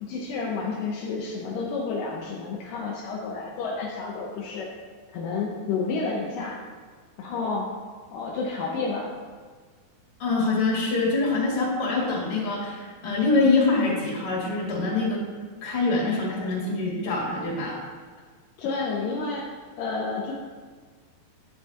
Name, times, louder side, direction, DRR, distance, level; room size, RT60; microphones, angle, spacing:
voice 1, 0.0-4.7 5.1-6.6 7.2-7.7 8.1-9.1 18.6-19.5 19.8-20.3, left 4 dB, 80° left, -2 dB, 1.9 m, -30 dB
voice 2, 10.2-15.2 15.6-17.8, left 3 dB, 40° left, -5 dB, 2.5 m, -24 dB
10.5 x 7.7 x 2.9 m, 1.5 s
omnidirectional pair, 4.8 m